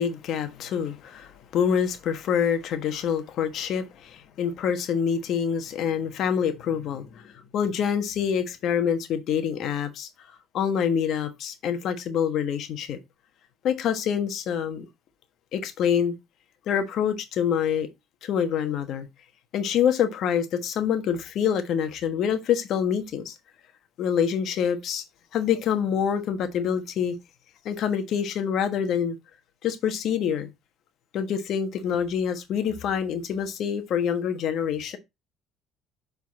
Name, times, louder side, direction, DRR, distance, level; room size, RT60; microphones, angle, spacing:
voice 1, 0.0-10.1 10.5-13.0 13.6-14.8 15.5-16.1 16.7-17.9 18.2-19.1 19.5-23.3 24.0-25.0 25.3-27.1 27.6-29.2 29.6-30.5 31.1-35.0, left 8 dB, 60° left, 1.3 m, -26 dB
7.6 x 4.0 x 4.1 m
supercardioid pair, 80°, 0 cm